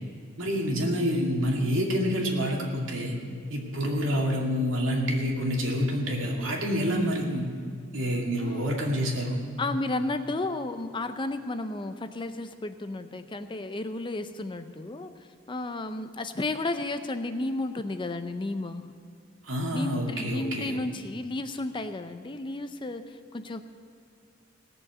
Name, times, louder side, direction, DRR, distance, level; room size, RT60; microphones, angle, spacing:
voice 1, 0.4-3.1 3.5-7.5 7.9-9.4 19.4-20.7, equal, 70° right, -1 dB, 2.4 m, -27 dB
voice 2, 9.6-15.1 15.5-18.9 19.7-23.6, left 2 dB, 25° left, 9 dB, 0.5 m, -33 dB
17.5 x 7.0 x 8.0 m, 2.4 s
head